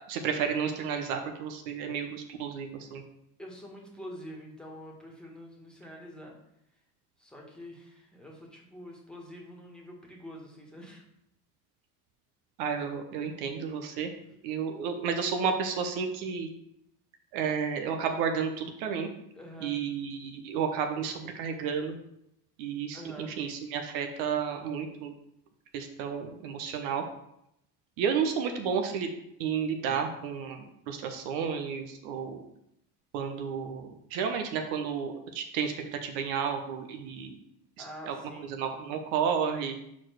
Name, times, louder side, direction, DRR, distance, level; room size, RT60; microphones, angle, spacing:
voice 1, 0.0-3.0 12.6-14.1 14.4-16.5 17.3-19.1 19.6-22.0 22.6-25.1 25.7-27.0 28.0-29.1 29.4-32.4 33.1-37.4 37.8-39.8, right 6 dB, 65° right, 4 dB, 1.0 m, -32 dB
voice 2, 3.4-6.3 7.2-11.0 19.4-19.8 22.9-23.4 37.8-38.6, equal, ahead, -1 dB, 1.7 m, -46 dB
4.7 x 4.4 x 5.9 m, 0.78 s
supercardioid pair, 100°, 46 cm